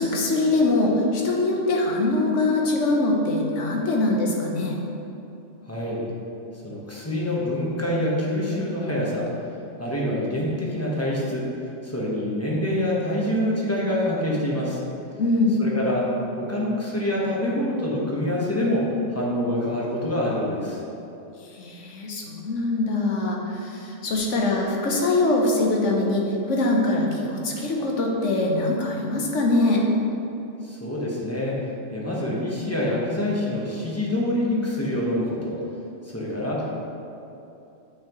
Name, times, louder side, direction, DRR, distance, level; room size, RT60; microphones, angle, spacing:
voice 1, 0.0-4.8 15.2-15.6 21.4-29.8, left 2 dB, 70° left, 0 dB, 1.2 m, -23 dB
voice 2, 5.6-6.0 6.6-9.3 9.8-11.5 11.8-14.8 15.6-16.1 16.4-20.8 30.6-31.6 31.9-35.6 36.0-36.8, left 1 dB, 15° left, -5 dB, 1.1 m, -26 dB
8.3 x 5.8 x 3.0 m, 2.8 s
omnidirectional pair, 1.3 m